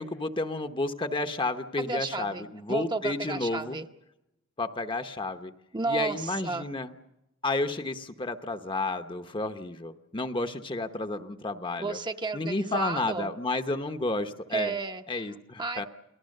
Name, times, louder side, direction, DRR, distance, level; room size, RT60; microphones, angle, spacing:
voice 1, 0.0-3.8 4.6-5.5 5.9-6.9 7.4-12.0 12.3-14.7 15.1-15.9, left 2 dB, 25° left, 9 dB, 0.9 m, -31 dB
voice 2, 1.8-3.9 5.7-6.7 11.8-13.3 14.5-15.3 15.6-15.9, right 3 dB, 25° right, 6 dB, 0.9 m, -32 dB
29.0 x 19.0 x 6.6 m, 0.92 s
head